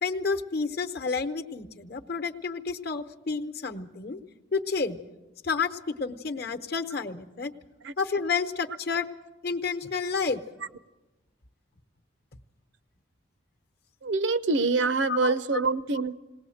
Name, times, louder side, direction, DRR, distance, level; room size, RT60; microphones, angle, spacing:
voice 1, 0.0-4.2 4.5-5.0 5.4-7.5 8.0-9.1 9.4-10.4 15.1-15.4, left 5 dB, 55° left, 0.9 m, -30 dB
voice 2, 14.0-16.2, right 3 dB, 70° right, 0.7 m, -25 dB
20.5 x 18.5 x 7.8 m
head